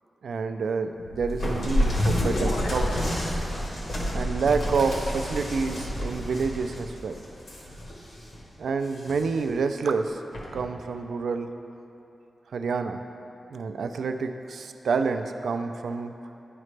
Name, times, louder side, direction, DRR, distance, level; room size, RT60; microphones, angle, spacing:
voice 1, 0.2-3.1 4.1-7.2 8.6-10.2 10.5-11.5 12.5-13.0 13.5-16.1, right 4 dB, 75° right, 7 dB, 0.3 m, -28 dB
sound 1, 1.0-3.7, left 1 dB, 70° left, 0.6 m, -27 dB
sound 2, 1.4-8.4 8.8-9.5 10.3-10.7, equal, 55° left, 1.2 m, -31 dB
11.0 x 5.0 x 3.2 m, 3.0 s
wide cardioid pair, 180°, 0 cm